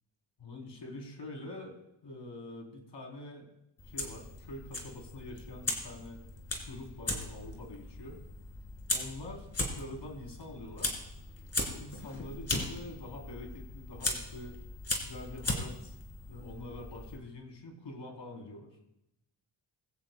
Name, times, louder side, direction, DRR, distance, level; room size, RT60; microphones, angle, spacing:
voice 1, 0.4-1.8 2.0-3.5 3.9-6.2 6.7-8.2 8.9-11.0 11.6-14.5 15.0-16.0 16.3-18.7, left 2 dB, 65° left, 1 dB, 3.5 m, -45 dB
Fire, 3.8-17.2, left 2 dB, 30° left, 3.0 m, -38 dB
21.5 x 16.0 x 2.2 m, 0.87 s
wide cardioid pair, 120°, 46 cm